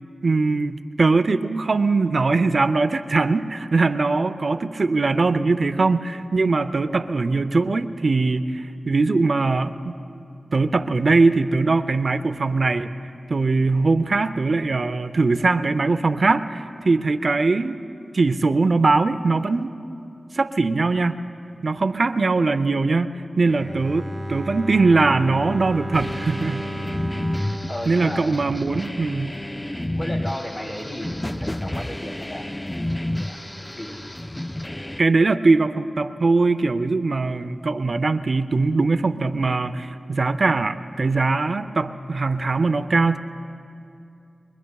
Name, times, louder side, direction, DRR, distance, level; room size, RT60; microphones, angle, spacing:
voice 1, 0.2-9.9 10.5-12.9 13.3-17.8 18.1-19.7 20.3-21.2 21.6-26.6 27.4-27.5 27.9-29.3 35.0-43.2, right 3 dB, 60° right, 11 dB, 0.5 m, -21 dB
Bowed string instrument, 23.4-29.4, equal, 20° right, 0.7 m, -33 dB
sound 1, 25.9-35.0, left 1 dB, 15° left, 0.3 m, -31 dB
voice 2, 27.7-28.6 29.9-32.5 33.2-34.0, left 1 dB, 35° left, 0 dB, 2.8 m, -34 dB
23.5 x 22.5 x 2.3 m, 2.6 s
cardioid pair, 45°, 0 cm